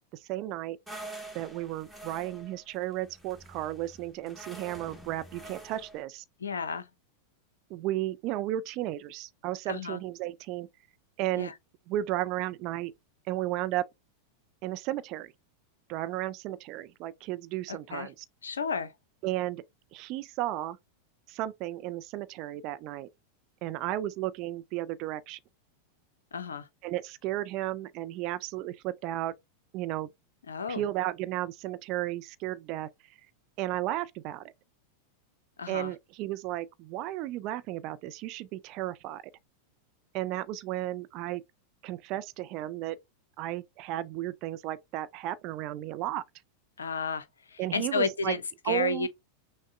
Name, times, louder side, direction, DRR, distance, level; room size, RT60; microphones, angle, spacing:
voice 1, 0.1-0.8 1.3-6.2 7.7-10.7 11.2-11.5 11.9-12.9 13.3-13.9 14.6-15.3 15.9-18.3 19.2-19.6 19.9-20.8 21.3-23.1 23.6-25.4 26.8-29.3 29.7-30.1 30.7-32.9 33.6-34.5 35.7-39.2 40.1-41.4 41.8-43.0 43.4-46.2 47.6-48.3 48.6-49.1, right 14 dB, 40° right, 0.4 m, -34 dB
sound 1, 0.9-6.0, right 2 dB, ahead, 1.4 m, -46 dB
voice 2, 6.4-6.9 9.7-10.0 11.3-11.5 17.7-18.1 18.4-18.9 26.3-26.7 30.5-30.8 35.6-35.9 46.8-48.4 48.7-49.1, left 5 dB, 70° left, 0.6 m, -32 dB
6.1 x 2.1 x 3.6 m
figure-of-eight pair, 90°, 0 cm